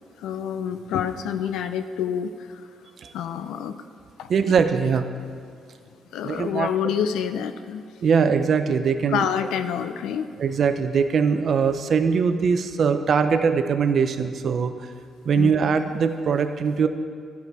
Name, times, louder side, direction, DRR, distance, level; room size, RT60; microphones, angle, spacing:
voice 1, 0.2-2.6 3.1-3.8 4.2-4.3 6.1-7.8 9.1-10.3 15.4-15.5, left 8 dB, 85° left, 10 dB, 0.4 m, -27 dB
voice 2, 4.3-5.0 6.2-6.7 8.0-9.3 10.4-14.9 15.2-16.9, right 6 dB, 55° right, 9 dB, 0.6 m, -21 dB
11.5 x 7.0 x 4.7 m, 2.1 s
cardioid pair, 90°, 0 cm